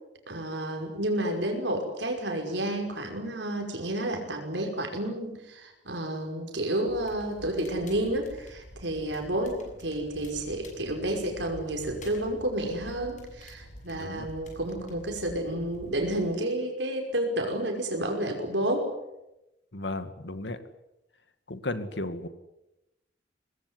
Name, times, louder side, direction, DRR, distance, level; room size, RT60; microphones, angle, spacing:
voice 1, 0.3-18.9, right 1 dB, 75° right, 3 dB, 5.5 m, -30 dB
Crackle, 6.9-16.2, equal, 45° left, 7.0 m, -48 dB
voice 2, 13.9-14.3 19.7-20.6 21.5-22.3, left 2 dB, 70° left, 10 dB, 2.3 m, -34 dB
24.0 x 20.5 x 9.7 m, 0.93 s
head